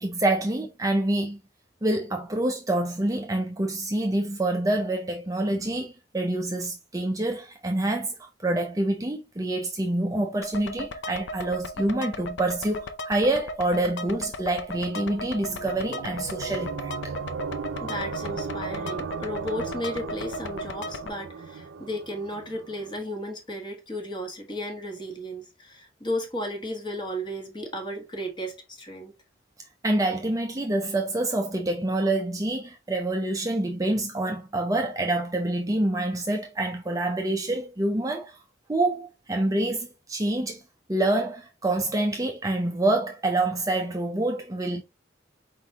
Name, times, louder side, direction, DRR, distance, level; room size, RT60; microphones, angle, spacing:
voice 1, 0.0-1.4 1.8-17.2 29.8-38.4 38.7-40.6 40.9-44.8, right 1 dB, 20° right, 0.5 m, -27 dB
sound 1, 10.4-21.1, left 1 dB, 70° left, 0.6 m, -37 dB
sound 2, 14.7-23.0, right 5 dB, 85° right, 0.4 m, -37 dB
voice 2, 17.8-29.1, equal, 25° left, 1.3 m, -34 dB
4.6 x 4.0 x 2.9 m
head